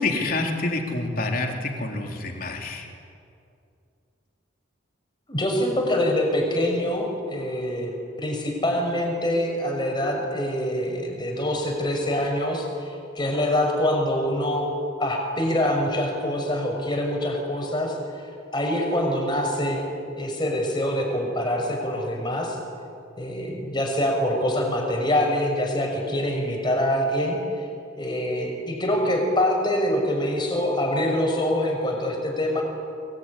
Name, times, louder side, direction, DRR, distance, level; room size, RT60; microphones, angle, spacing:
voice 1, 0.0-2.9, left 2 dB, 50° left, 2 dB, 3.6 m, -27 dB
voice 2, 5.3-7.9 8.2-14.7 15.0-17.9 18.5-19.8 20.2-22.6 23.2-27.4 28.0-32.6, left 1 dB, 25° left, 1 dB, 6.1 m, -25 dB
23.5 x 23.0 x 9.9 m, 2.5 s
head